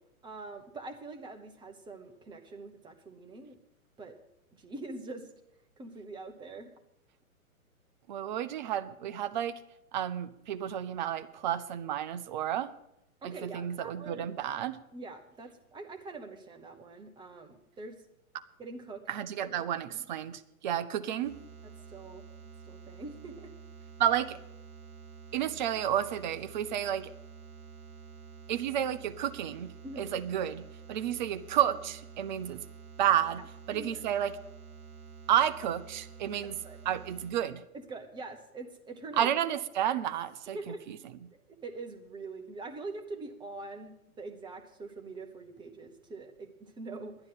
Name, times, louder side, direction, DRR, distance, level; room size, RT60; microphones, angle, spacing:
voice 1, 0.2-3.6 4.0-4.2 4.5-5.3 5.8-6.7 13.2-14.3 14.9-17.9 18.6-19.0 19.9-20.0 21.6-23.5 29.8-30.2 33.7-34.0 36.6-36.8 37.7-39.3 40.5-40.8 41.3-47.2, right 3 dB, 10° right, 6 dB, 0.9 m, -44 dB
voice 2, 8.1-9.6 9.9-12.7 13.2-14.8 19.1-21.4 24.0-24.4 25.3-27.1 28.5-30.6 30.9-32.6 33.0-33.4 33.7-34.4 35.3-36.6 36.8-37.6 39.2-40.6 40.9-41.0, right 10 dB, 35° right, 13 dB, 0.5 m, -31 dB
sound 1, 21.2-37.3, right 6 dB, 75° right, 2.4 m, -49 dB
11.0 x 9.9 x 7.5 m, 0.83 s
hypercardioid pair, 125°, 43 cm